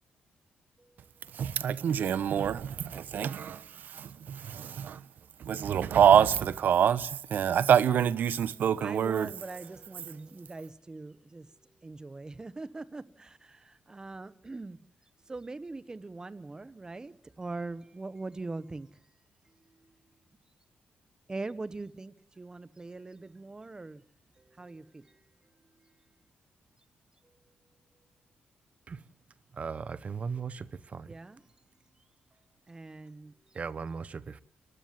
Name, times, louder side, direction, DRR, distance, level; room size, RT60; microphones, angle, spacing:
voice 1, 1.3-3.6 3.9-5.0 5.4-9.3, right 8 dB, 70° right, 1.2 m, -26 dB
voice 2, 8.8-11.5 11.8-14.8 15.3-18.9 19.8-19.9 21.3-24.0 24.4-25.1 31.1-31.4 32.7-33.3, right 3 dB, 20° right, 1.2 m, -42 dB
voice 3, 29.5-31.1 33.5-34.4, right 5 dB, 45° right, 1.0 m, -37 dB
30.0 x 15.5 x 7.7 m
cardioid pair, 100°, 3 cm